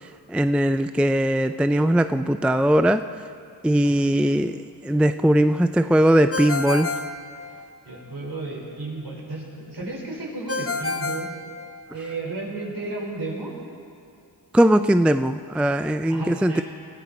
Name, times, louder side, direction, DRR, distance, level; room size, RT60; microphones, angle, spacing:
voice 1, 0.3-3.0 3.6-6.9 14.5-16.6, right 1 dB, 5° right, 10 dB, 0.5 m, -20 dB
Ringtone, 6.3-8.0 10.5-12.2, left 3 dB, 30° left, 1.2 m, -29 dB
voice 2, 7.9-11.3 11.9-13.5 16.1-16.6, right 2 dB, 55° right, -2 dB, 5.2 m, -33 dB
22.0 x 14.5 x 4.4 m, 2.4 s
supercardioid pair, 40°, 45 cm